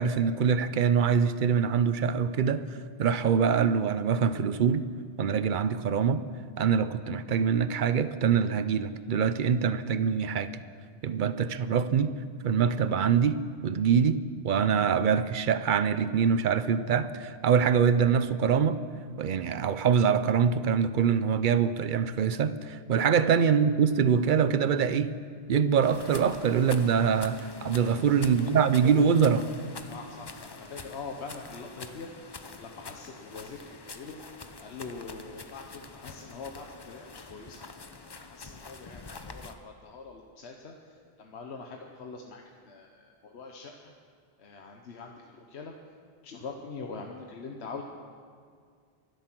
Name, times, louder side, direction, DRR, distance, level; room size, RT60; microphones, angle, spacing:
voice 1, 0.0-2.7 3.0-4.9 5.2-6.2 6.6-10.6 11.0-12.1 12.4-18.8 19.2-25.1 25.5-29.5, right 7 dB, 55° right, 13 dB, 0.7 m, -24 dB
sound 1, 25.8-39.5, left 3 dB, 30° left, 0.6 m, -45 dB
voice 2, 27.9-28.5 29.9-34.2 34.6-37.6 38.2-43.9 44.4-45.7 46.2-47.8, left 4 dB, 85° left, 2 dB, 1.2 m, -43 dB
24.5 x 8.2 x 6.0 m, 2.1 s
omnidirectional pair, 1.1 m